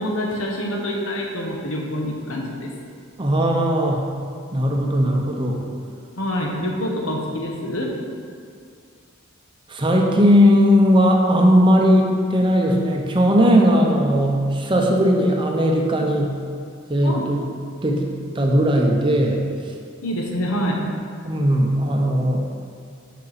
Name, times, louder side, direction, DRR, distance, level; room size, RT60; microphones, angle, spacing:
voice 1, 0.0-2.7 6.2-7.9 14.7-14.9 17.0-17.2 20.0-20.8, equal, 85° left, -1 dB, 1.0 m, -26 dB
voice 2, 3.2-4.0 4.5-5.6 9.7-16.3 16.9-17.4 17.8-19.4 21.2-22.4, equal, 25° right, 1 dB, 0.6 m, -18 dB
6.0 x 5.3 x 4.1 m, 2.3 s
head